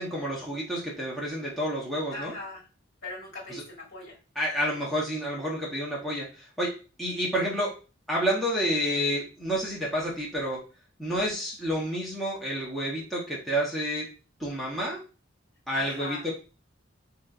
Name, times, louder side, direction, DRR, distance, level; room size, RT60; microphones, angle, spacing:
voice 1, 0.0-2.3 3.5-3.6 4.3-6.7 7.0-7.7 8.1-10.6 11.0-14.1 14.4-15.0 15.7-16.3, equal, ahead, -6 dB, 0.8 m, -29 dB
voice 2, 2.1-2.6 3.0-4.2 15.7-16.2, left 2 dB, 65° left, -4 dB, 1.6 m, -39 dB
3.9 x 2.8 x 2.4 m, 0.33 s
head